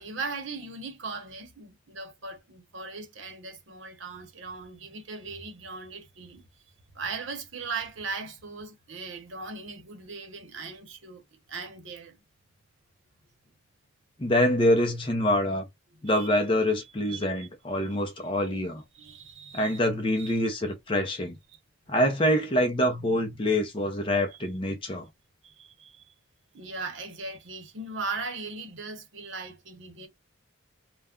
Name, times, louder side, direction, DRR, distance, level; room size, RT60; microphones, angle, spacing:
voice 1, 0.0-6.5 6.9-12.2 15.9-16.3 17.0-17.5 17.8-18.0 18.9-19.8 20.1-20.4 21.5-21.6 25.4-26.1 26.5-30.1, right 4 dB, 70° right, 0.9 m, -39 dB
voice 2, 14.2-15.6 16.0-18.8 19.5-21.4 21.9-25.1, left 1 dB, 25° left, 0.6 m, -25 dB
2.4 x 2.2 x 3.5 m
head